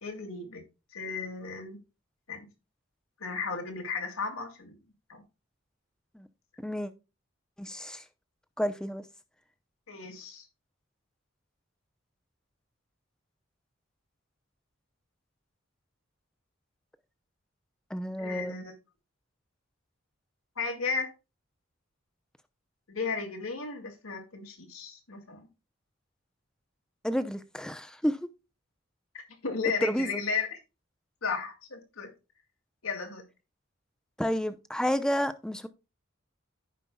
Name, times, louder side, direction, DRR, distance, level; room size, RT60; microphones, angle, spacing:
voice 1, 0.0-0.6 0.9-1.8 2.3-2.5 3.2-4.8 5.1-5.2 9.9-10.5 18.2-18.6 20.6-21.1 22.9-25.5 29.4-30.6 31.2-32.1 32.8-33.2, left 5 dB, 90° left, 2.1 m, -34 dB
voice 2, 6.6-6.9 7.6-8.0 8.6-9.0 17.9-18.6 27.0-28.3 29.8-30.2 34.2-35.7, equal, 5° left, 0.6 m, -30 dB
14.5 x 5.3 x 2.3 m
head